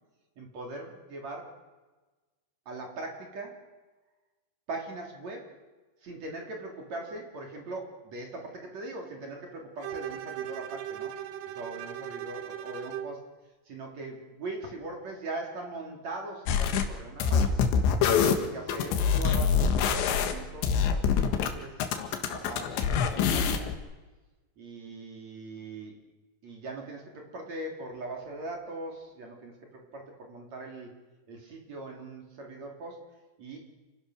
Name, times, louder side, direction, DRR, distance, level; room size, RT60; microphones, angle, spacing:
voice 1, 0.4-1.6 2.7-3.6 4.7-5.6 6.0-11.1 11.5-13.3 13.7-17.6 18.3-21.8 22.3-23.7 24.6-26.0 26.4-31.0 31.3-33.0 33.4-33.6, right 2 dB, 40° right, 1 dB, 3.8 m, -40 dB
Bowed string instrument, 9.8-13.2, right 10 dB, 85° right, 3.6 m, -38 dB
sound 1, 16.5-16.9 17.2-21.5 21.8-23.8, left 6 dB, 75° left, 3.6 m, -25 dB
29.5 x 16.0 x 6.4 m, 1.2 s
omnidirectional pair, 5.5 m